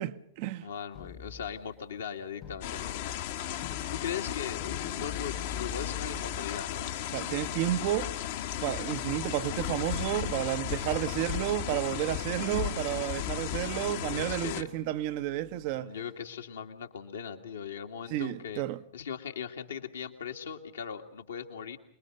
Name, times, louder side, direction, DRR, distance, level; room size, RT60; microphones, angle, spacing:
voice 1, 0.0-0.7 7.1-8.1 8.6-16.0 18.1-18.8, right 14 dB, 45° right, 0.9 m, -31 dB
voice 2, 0.6-3.0 3.9-7.0 14.1-14.7 15.7-18.6 18.9-21.8, left 7 dB, 70° left, 2.1 m, -39 dB
sound 1, 0.9-1.8 2.4-3.0 3.6-11.1 11.9-15.8, left 8 dB, 35° left, 0.9 m, -47 dB
sound 2, 2.6-14.6, left 11 dB, 55° left, 1.4 m, -35 dB
27.0 x 21.5 x 6.6 m
figure-of-eight pair, 90°, 0 cm